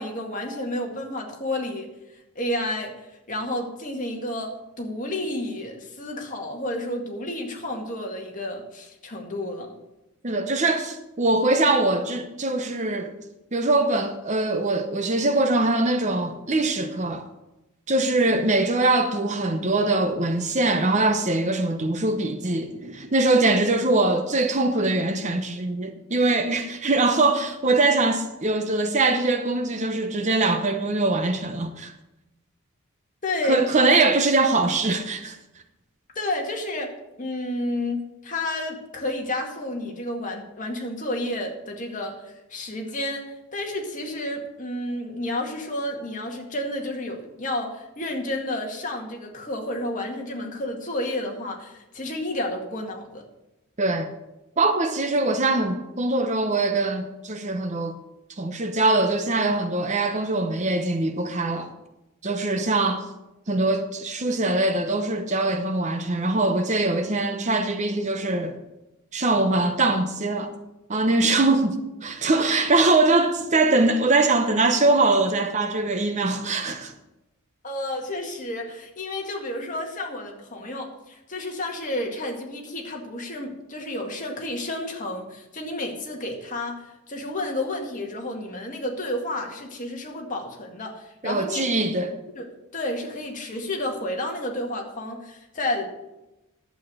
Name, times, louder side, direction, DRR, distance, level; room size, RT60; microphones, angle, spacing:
voice 1, 0.0-1.9 2.4-2.9 3.3-9.7 33.2-33.6 36.2-36.9 37.2-42.1 42.5-53.2 77.6-91.6 92.4-92.5 92.7-95.9, left 1 dB, 35° left, 2.0 m, -31 dB
voice 2, 10.2-13.2 13.5-17.3 17.9-31.9 33.5-35.4 53.8-54.1 54.6-58.0 58.4-61.7 62.2-63.1 63.5-68.6 69.1-70.5 70.9-76.9 91.2-92.1, right 2 dB, 35° right, 0.8 m, -22 dB
11.0 x 8.2 x 6.2 m
head